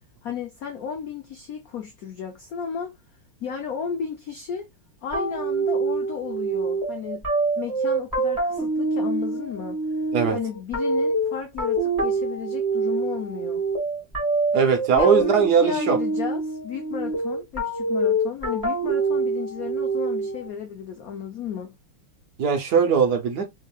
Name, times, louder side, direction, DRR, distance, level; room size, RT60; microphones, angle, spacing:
voice 1, 0.2-3.0 3.4-4.7 5.0-7.2 7.5-9.8 10.3-13.6 14.9-21.7, left 7 dB, 80° left, 0.8 m, -33 dB
sound 1, 5.1-20.5, right 3 dB, 10° right, 2.2 m, -25 dB
voice 2, 14.5-16.0 22.4-23.5, right 6 dB, 55° right, 1.3 m, -20 dB
3.8 x 3.6 x 2.3 m
omnidirectional pair, 2.4 m